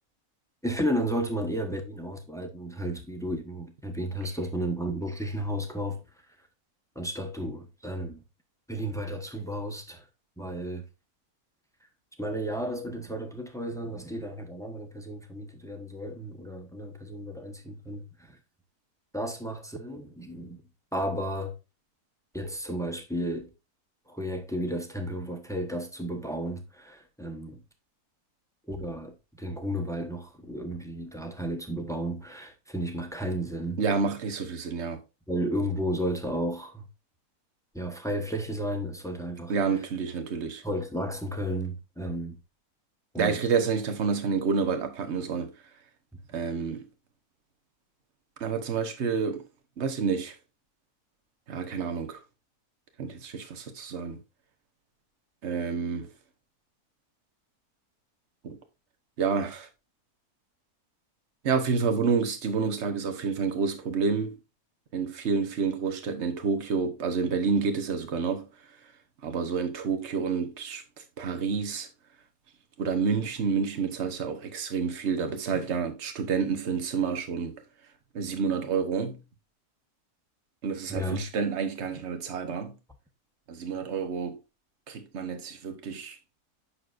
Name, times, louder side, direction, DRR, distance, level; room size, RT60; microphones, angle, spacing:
voice 1, 0.6-6.0 6.9-8.2 8.7-10.1 10.4-10.8 12.2-18.4 19.1-20.6 20.9-21.6 22.3-23.5 24.1-27.6 28.7-33.8 35.3-36.9 37.7-39.5 40.6-42.4 43.1-43.5 80.9-81.2, equal, 5° left, 0.9 m, -33 dB
voice 2, 33.8-35.0 39.5-40.6 43.2-45.5 46.3-46.8 48.4-49.4 49.8-50.3 51.5-52.2 53.0-54.2 55.4-56.1 58.4-58.6 59.2-59.7 61.4-64.4 64.9-68.5 69.2-71.9 72.8-77.6 78.1-79.2 80.6-82.8 83.5-84.4 84.9-86.2, right 5 dB, 50° right, 1.4 m, -29 dB
8.5 x 6.3 x 2.5 m
omnidirectional pair, 1.6 m